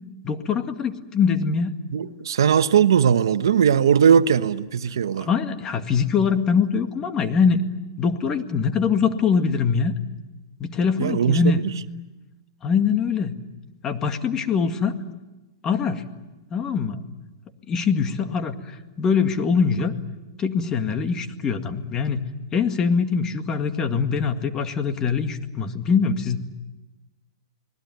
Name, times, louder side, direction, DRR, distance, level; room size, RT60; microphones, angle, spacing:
voice 1, 0.2-1.8 5.3-7.6 8.0-9.9 10.6-11.6 12.6-13.4 13.8-14.9 15.6-16.1 16.5-17.0 17.7-19.9 20.4-22.2 22.5-26.4, left 6 dB, 25° left, 7 dB, 2.0 m, -23 dB
voice 2, 1.9-5.3 11.0-11.8, right 8 dB, 80° right, 12 dB, 1.1 m, -19 dB
30.0 x 20.0 x 9.4 m, 1.1 s
hypercardioid pair, 130°, 2 cm